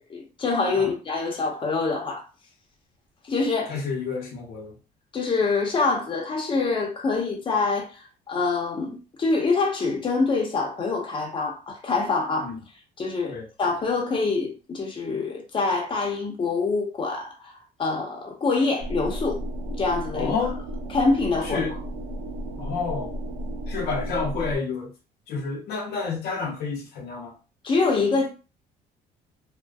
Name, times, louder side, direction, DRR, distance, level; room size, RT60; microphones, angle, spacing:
voice 1, 0.1-2.3 3.2-3.7 5.1-12.5 13.0-17.5 17.8-19.4 19.8-20.3 20.9-21.7 27.6-28.3, left 3 dB, 30° left, 0.8 m, -25 dB
voice 2, 3.7-4.7 12.4-12.6 13.3-13.5 20.1-20.6 21.5-21.7 22.6-23.1 23.7-24.9 25.3-27.3, left 5 dB, 70° left, 0.7 m, -29 dB
sound 1, 18.8-24.6, right 1 dB, 90° right, 0.5 m, -33 dB
2.5 x 2.2 x 2.3 m
cardioid pair, 110°, 17 cm